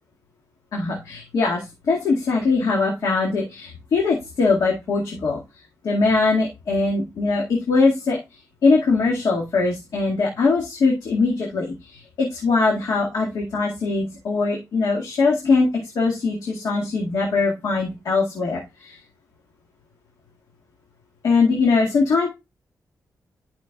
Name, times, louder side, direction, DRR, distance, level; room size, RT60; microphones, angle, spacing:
voice 1, 0.7-5.4 5.8-8.2 8.6-19.0 21.2-22.3, left 4 dB, 80° left, -2 dB, 2.0 m, -21 dB
11.5 x 5.8 x 2.4 m, 0.24 s
wide cardioid pair, 120°, 6 cm